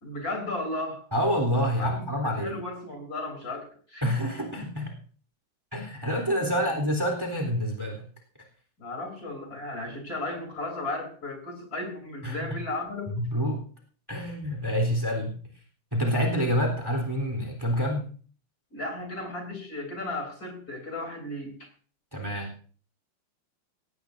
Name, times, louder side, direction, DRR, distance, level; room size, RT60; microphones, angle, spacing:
voice 1, 0.0-1.0 1.8-1.9 2.2-4.1 5.9-6.1 6.4-6.7 8.8-13.1 18.7-21.7, left 2 dB, 40° left, 3 dB, 4.2 m, -35 dB
voice 2, 1.1-2.6 4.0-4.9 5.7-8.0 12.2-12.4 13.1-13.6 14.1-15.3 15.9-18.1 22.1-22.6, equal, 10° right, 3 dB, 3.6 m, -27 dB
18.0 x 17.5 x 2.7 m, 0.41 s
omnidirectional pair, 2.4 m